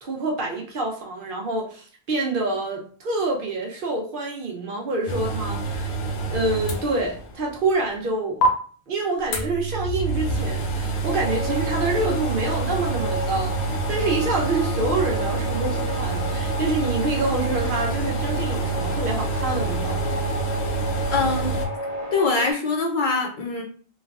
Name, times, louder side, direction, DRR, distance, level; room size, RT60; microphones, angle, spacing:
voice 1, 0.0-5.9 6.3-8.4 8.9-20.1, right 2 dB, 60° right, 0 dB, 0.8 m, -27 dB
sound 1, 5.1-7.4 7.7-7.8 8.4-8.5 9.3-21.7, right 3 dB, 85° left, 0.9 m, -27 dB
sound 2, 11.0-22.5, left 1 dB, 40° right, 0.5 m, -32 dB
voice 2, 21.1-21.6 22.1-23.6, left 3 dB, 55° left, 0 dB, 0.7 m, -23 dB
3.2 x 2.3 x 2.3 m, 0.43 s
omnidirectional pair, 1.1 m